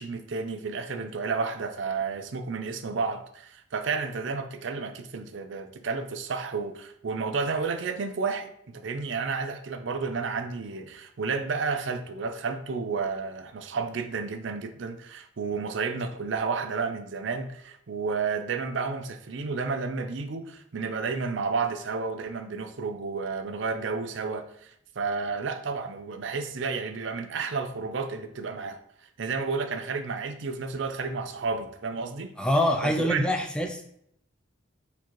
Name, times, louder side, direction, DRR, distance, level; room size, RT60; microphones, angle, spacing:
voice 1, 0.0-28.8 29.2-32.3 32.8-33.3, right 4 dB, 65° right, 0.5 m, -31 dB
voice 2, 32.4-33.8, left 1 dB, 5° left, 0.3 m, -25 dB
4.4 x 4.0 x 3.0 m
head